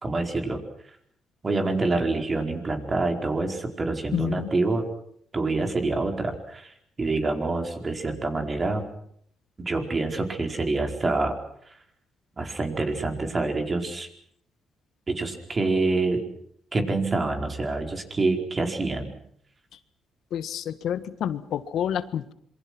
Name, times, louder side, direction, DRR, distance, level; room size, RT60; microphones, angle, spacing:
voice 1, 0.0-0.6 1.4-4.8 5.3-8.9 9.6-11.3 12.4-14.1 15.1-16.2 16.7-19.1, right 3 dB, 30° right, 5 dB, 4.7 m, -26 dB
voice 2, 4.1-4.5 19.7-19.8 20.3-22.3, left 9 dB, 75° left, 13 dB, 1.6 m, -29 dB
26.5 x 24.0 x 6.2 m, 0.67 s
cardioid pair, 90°, 0 cm